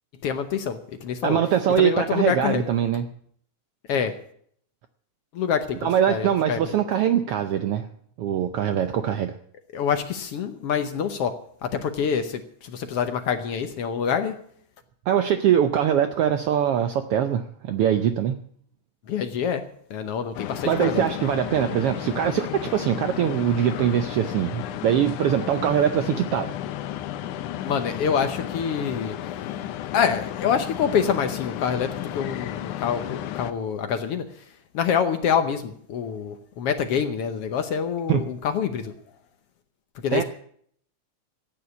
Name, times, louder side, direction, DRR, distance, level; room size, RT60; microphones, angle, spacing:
voice 1, 0.2-1.4 1.8-2.6 3.9-4.1 5.3-6.6 9.7-11.3 11.6-14.4 19.1-19.6 19.9-21.0 27.6-29.2 29.9-34.2 34.7-38.9 40.0-40.2, left 7 dB, 65° left, 8 dB, 1.7 m, -26 dB
voice 2, 1.2-3.1 5.8-7.9 8.2-9.4 15.1-18.4 20.6-26.5 38.1-38.3 40.1-40.2, right 9 dB, 75° right, 9 dB, 1.4 m, -22 dB
sound 1, 20.3-33.5, left 12 dB, 90° left, 2.3 m, -33 dB
14.0 x 9.4 x 8.2 m, 0.62 s
omnidirectional pair, 3.4 m